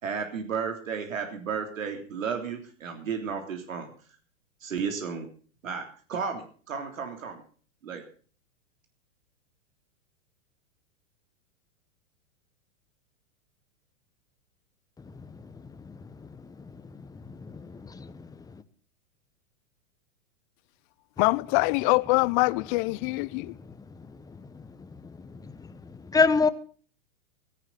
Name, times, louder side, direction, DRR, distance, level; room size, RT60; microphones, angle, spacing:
voice 1, 0.0-3.9 4.6-5.3 5.6-7.4 7.8-8.0, right 6 dB, 85° right, 3.4 m, -33 dB
voice 2, 17.0-18.3 24.4-24.5 25.0-25.3 25.6-26.5, left 4 dB, 10° left, 1.1 m, -27 dB
voice 3, 21.2-23.5, left 24 dB, 40° left, 0.7 m, -24 dB
17.0 x 15.0 x 4.1 m
hypercardioid pair, 125°, 38 cm